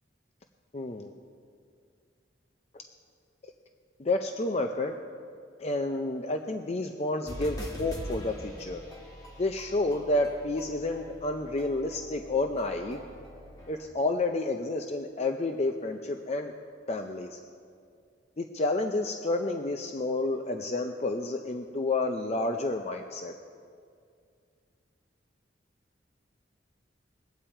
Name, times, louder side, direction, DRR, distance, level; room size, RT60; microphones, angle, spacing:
voice 1, 0.7-1.1 2.7-2.8 4.0-4.9 5.6-8.8 9.4-13.0 13.7-16.5 16.9-17.4 18.4-23.3, left 2 dB, 35° left, 5 dB, 0.6 m, -30 dB
sound 1, 7.3-13.9, equal, 20° left, 1.6 m, -43 dB
22.0 x 8.7 x 4.4 m, 2.3 s
head